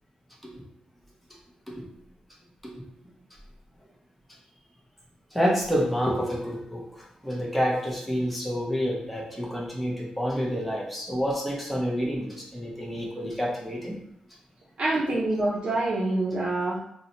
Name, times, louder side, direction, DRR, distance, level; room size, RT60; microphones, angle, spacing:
voice 1, 5.3-14.0, equal, ahead, -3 dB, 0.6 m, -28 dB
voice 2, 14.8-16.8, right 2 dB, 50° right, -6 dB, 0.5 m, -26 dB
2.6 x 2.1 x 4.0 m, 0.74 s
wide cardioid pair, 135°, 2 cm